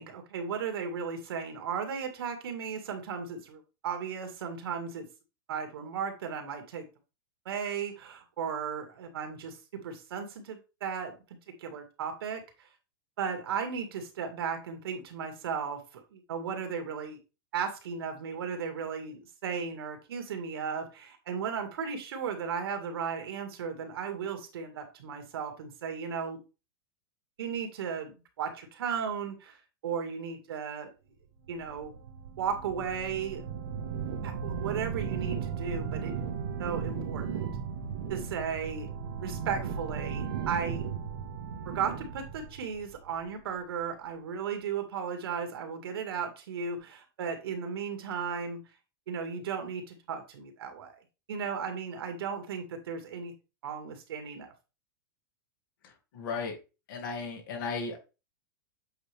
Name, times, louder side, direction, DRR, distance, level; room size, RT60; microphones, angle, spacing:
voice 1, 0.0-5.1 5.5-6.8 7.5-11.1 11.6-12.4 13.2-17.2 17.5-26.4 27.4-29.6 29.8-30.9 31.5-32.0 32.4-33.5 34.2-36.3 36.6-37.5 38.1-38.9 39.2-40.9 41.7-48.6 49.1-50.9 51.3-53.3 53.6-54.5, right 6 dB, 90° right, 5 dB, 2.0 m, -35 dB
sound 1, 31.5-43.5, right 7 dB, 60° right, 1.5 m, -36 dB
voice 2, 55.8-56.6 56.9-58.0, left 4 dB, 60° left, 2 dB, 2.3 m, -35 dB
8.0 x 4.1 x 3.5 m, 0.30 s
supercardioid pair, 175°, 12 cm